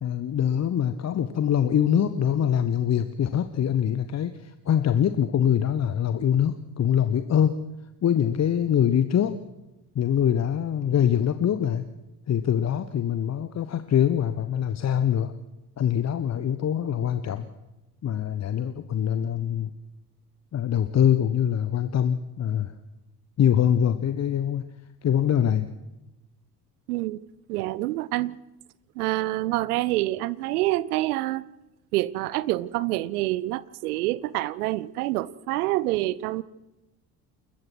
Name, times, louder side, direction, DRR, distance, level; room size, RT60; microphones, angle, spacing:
voice 1, 0.0-7.6 8.0-9.4 9.9-11.8 12.3-15.3 15.8-17.5 18.0-19.7 20.5-22.7 23.4-24.7 25.0-25.7, left 9 dB, 35° left, 1.2 m, -24 dB
voice 2, 26.9-27.2 27.5-28.4 29.0-31.4 31.9-36.4, right 17 dB, 65° right, 0.9 m, -27 dB
28.5 x 14.5 x 6.3 m
figure-of-eight pair, 55°, 49 cm